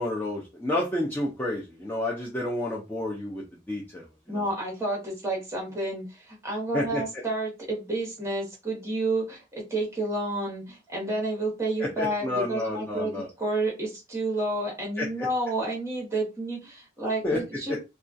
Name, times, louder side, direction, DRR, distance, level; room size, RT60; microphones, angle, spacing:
voice 1, 0.0-4.5 6.7-7.0 11.8-13.3 15.0-15.3 17.2-17.4 17.7-17.8, left 1 dB, 10° left, -4 dB, 0.4 m, -30 dB
voice 2, 4.3-17.8, right 2 dB, 15° right, -1 dB, 1.0 m, -30 dB
2.3 x 2.3 x 2.5 m, 0.27 s
head